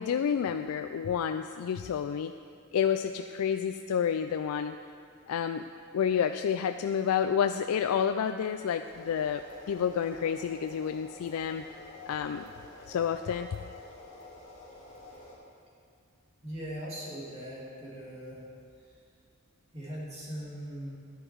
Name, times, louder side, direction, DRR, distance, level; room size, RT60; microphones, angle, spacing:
voice 1, 0.0-2.3 2.7-4.8 5.3-5.6 5.9-9.4 9.7-11.6 12.1-12.5 12.9-13.5, left 8 dB, 85° left, 8 dB, 0.3 m, -29 dB
sound 1, 8.8-15.4, left 2 dB, 35° left, 3.0 m, -49 dB
voice 2, 16.4-18.4 19.7-20.9, equal, 30° right, -6 dB, 2.8 m, -40 dB
11.0 x 10.0 x 4.6 m, 2.3 s
head